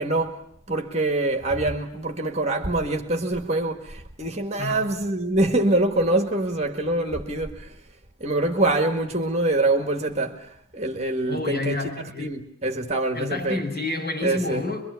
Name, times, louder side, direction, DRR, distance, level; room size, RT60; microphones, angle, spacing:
voice 1, 0.0-7.7 8.2-11.8 12.2-13.6 14.2-14.7, right 2 dB, 30° right, 1.8 m, -25 dB
voice 2, 4.6-4.9 11.3-12.4 13.1-14.8, left 2 dB, 45° left, 7.3 m, -29 dB
25.5 x 23.5 x 8.3 m
head